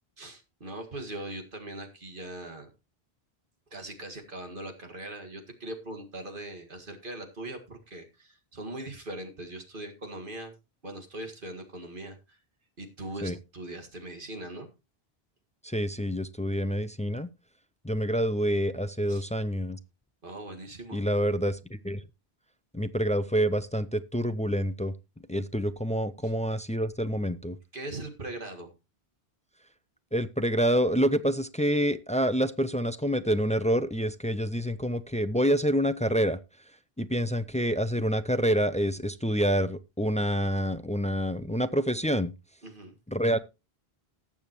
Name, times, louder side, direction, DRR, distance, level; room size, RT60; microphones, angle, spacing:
voice 1, 0.2-2.7 3.7-10.5 10.8-12.4 12.8-14.7 19.1-19.3 20.2-21.1 26.2-26.3 27.7-28.7 42.6-43.0, right 1 dB, 55° right, 4 dB, 2.1 m, -40 dB
voice 2, 15.6-17.3 17.8-19.8 20.9-21.6 21.8-22.0 22.7-24.9 25.3-27.6 30.1-36.4 37.0-42.3 43.1-43.4, equal, 10° left, 14 dB, 0.3 m, -27 dB
19.0 x 7.1 x 3.0 m, 0.26 s
omnidirectional pair, 1.1 m